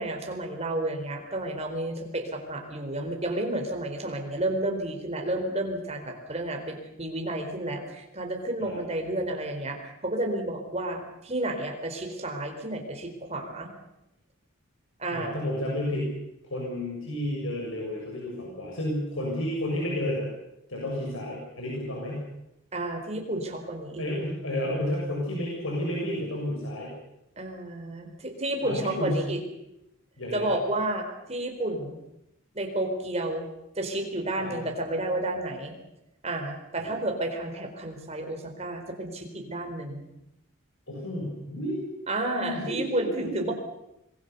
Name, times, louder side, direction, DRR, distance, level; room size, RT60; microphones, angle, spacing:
voice 1, 0.0-13.7 15.0-15.4 22.7-24.0 27.4-29.4 30.3-32.0 32.5-33.5 33.7-35.7 36.2-40.0 42.1-43.5, right 1 dB, 30° right, 3 dB, 4.2 m, -31 dB
voice 2, 15.1-16.1 16.4-20.3 20.7-22.3 24.0-26.9 28.0-28.1 28.6-29.2 30.2-30.5 34.4-34.7 36.8-37.0 40.9-41.9 42.2-43.5, left 1 dB, 75° left, -2 dB, 6.7 m, -31 dB
26.0 x 20.5 x 6.9 m, 0.87 s
head